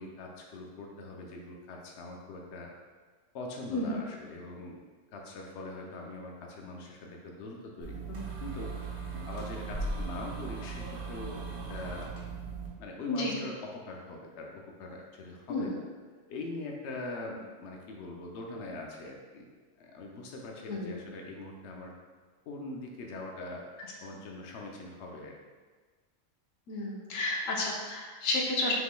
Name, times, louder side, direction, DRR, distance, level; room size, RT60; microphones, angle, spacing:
voice 1, 0.0-2.7 3.3-4.8 5.1-8.0 8.4-8.7 9.2-11.4 11.7-12.1 12.8-15.8 16.3-19.5 19.8-21.9 22.5-23.6 24.0-25.3, left 2 dB, 65° left, 0 dB, 0.9 m, -42 dB
sound 1, 7.8-12.7, right 3 dB, 80° right, 1.4 m, -38 dB
voice 2, 13.1-13.4 15.5-15.7 20.7-20.9 26.7-28.7, left 2 dB, 90° left, -1 dB, 1.2 m, -31 dB
5.6 x 3.7 x 2.2 m, 1.4 s
omnidirectional pair, 1.3 m